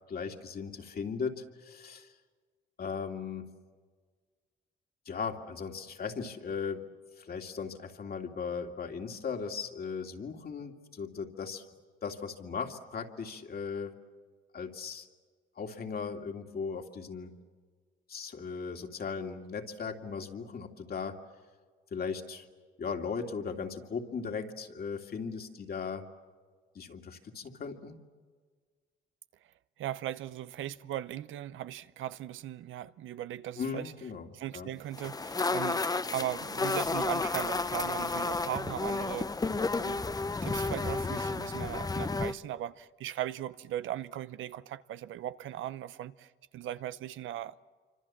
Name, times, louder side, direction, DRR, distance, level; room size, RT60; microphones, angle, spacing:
voice 1, 0.1-2.1 2.8-3.5 5.1-6.9 7.2-11.6 12.0-13.9 14.5-15.1 15.6-17.3 18.1-21.2 21.9-22.5 22.8-26.1 26.7-27.9 33.6-34.3 34.5-34.7, left 5 dB, 50° left, 2.6 m, -37 dB
voice 2, 29.8-33.9 34.3-39.3 39.8-40.0 40.4-47.7, right 12 dB, 80° right, 0.8 m, -38 dB
sound 1, 34.9-42.3, left 3 dB, 20° left, 0.8 m, -32 dB
27.5 x 25.5 x 7.4 m
cardioid pair, 90°, 20 cm